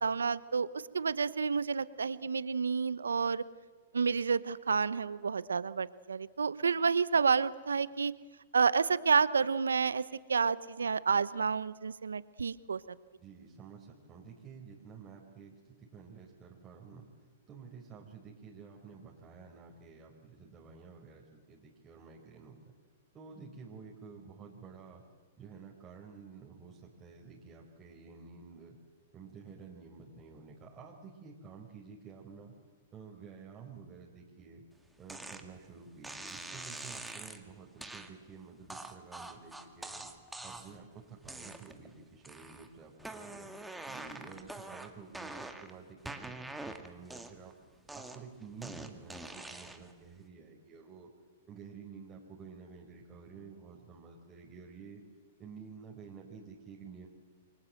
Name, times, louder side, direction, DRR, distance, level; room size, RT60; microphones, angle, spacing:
voice 1, 0.0-3.4 3.9-8.1 8.5-10.0 10.3-12.8, right 5 dB, 90° right, 17 dB, 1.0 m, -30 dB
voice 2, 13.2-17.1 17.5-22.7 23.1-25.0 25.4-28.8 29.1-32.5 32.9-34.6 35.0-40.0 40.4-43.5 43.8-46.5 46.8-47.5 47.9-51.1 51.5-55.0 55.4-57.1, right 5 dB, 20° right, -2 dB, 4.8 m, -51 dB
sound 1, 35.1-35.4 36.0-37.4 37.8-38.1 38.7-40.8 41.2-41.9 42.2-42.7 43.0-45.7 46.1-47.5 47.9-49.9, right 2 dB, 5° right, 2.2 m, -44 dB
29.0 x 24.0 x 7.8 m, 1.4 s
hypercardioid pair, 120°, 0 cm